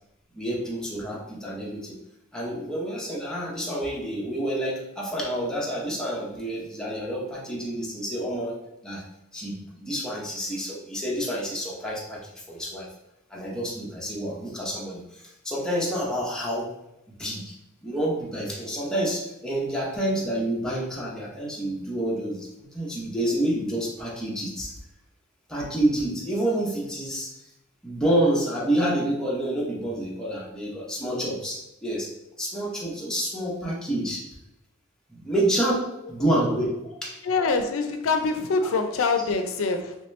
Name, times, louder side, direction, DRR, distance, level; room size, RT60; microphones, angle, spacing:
voice 1, 0.3-2.0 2.3-8.6 8.8-9.0 9.3-12.9 13.3-16.7 17.2-17.5 17.8-24.7 25.5-27.4 27.8-32.1 32.4-34.2 35.1-37.2, right 1 dB, 5° left, -5 dB, 0.7 m, -28 dB
voice 2, 37.2-40.0, left 4 dB, 85° left, 7 dB, 0.4 m, -25 dB
3.1 x 2.8 x 3.2 m, 0.89 s
head